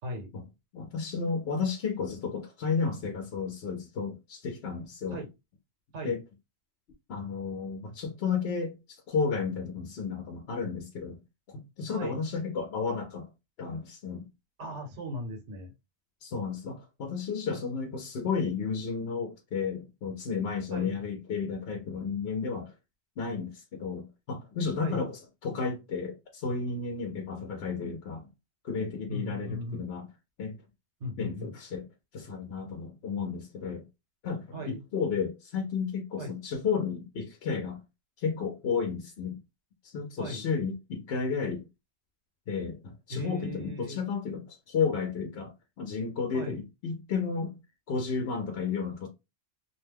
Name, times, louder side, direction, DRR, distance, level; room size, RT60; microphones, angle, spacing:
voice 1, 0.7-5.2 6.0-6.2 7.1-11.2 11.5-13.3 13.6-14.3 16.2-22.7 23.2-28.3 28.6-30.1 30.4-30.6 31.2-31.8 32.1-33.8 34.2-37.8 38.2-39.4 39.8-41.7 42.5-47.5 47.9-49.1, left 5 dB, 65° left, 0.8 m, -32 dB
voice 2, 11.9-12.2 14.6-15.7 20.7-21.0 24.8-25.1 29.1-29.8 31.0-31.5 34.5-34.8 36.2-36.3 40.2-40.5 43.1-44.0 46.3-46.6, equal, 80° right, 1.1 m, -37 dB
2.6 x 2.1 x 3.3 m
omnidirectional pair, 1.1 m